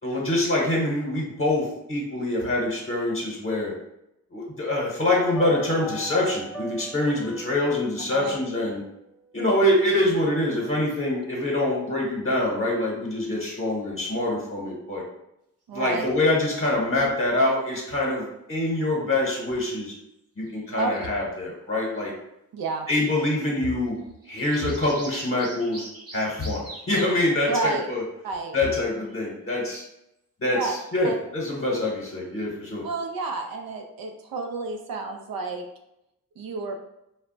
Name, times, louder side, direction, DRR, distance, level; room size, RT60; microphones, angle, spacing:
voice 1, 0.0-3.7 4.3-8.8 9.3-15.0 15.7-19.9 20.4-22.1 22.9-24.0 24.2-25.9 26.1-28.0 28.5-29.8 30.4-32.8, left 1 dB, 40° left, -3 dB, 0.9 m, -25 dB
sound 1, 5.3-9.7 9.9-10.0, right 1 dB, ahead, 0.4 m, -40 dB
voice 2, 15.7-16.1 20.8-21.1 22.5-22.9 27.5-27.9 28.2-28.6 30.5-30.7 31.0-31.2 32.8-35.6 36.4-36.8, right 4 dB, 90° right, 4 dB, 0.5 m, -30 dB
sound 2, 16.2-16.3 19.6-19.8 20.5-21.0 24.0-27.2 29.0-29.2 30.5-31.0, right 2 dB, 45° right, 0.8 m, -43 dB
2.2 x 2.1 x 3.8 m, 0.85 s
cardioid pair, 70°, 34 cm